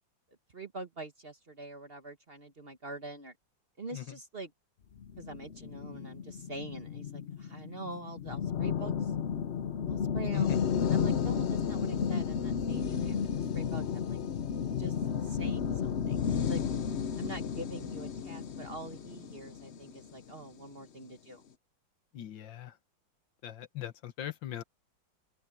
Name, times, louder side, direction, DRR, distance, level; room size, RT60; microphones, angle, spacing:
voice 1, 0.5-3.3 3.8-4.5 5.2-9.1 9.9-14.2 14.8-15.0 15.2-16.6 17.2-21.4, right 2 dB, 35° right, 1.3 m, -45 dB
sound 1, 5.0-20.4, left 7 dB, 55° left, 0.7 m, -33 dB
voice 2, 22.1-22.8 23.4-24.6, left 12 dB, 70° left, 1.7 m, -40 dB
open air
omnidirectional pair, 2.1 m